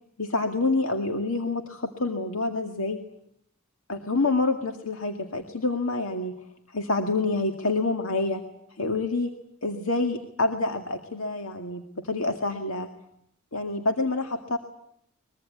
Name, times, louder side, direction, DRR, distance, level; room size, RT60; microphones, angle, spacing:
voice 1, 0.2-3.0 3.9-6.4 6.7-8.4 8.7-9.3 9.6-12.9 13.5-14.6, left 3 dB, 80° left, 6 dB, 2.1 m, -27 dB
23.5 x 22.5 x 9.4 m, 0.73 s
head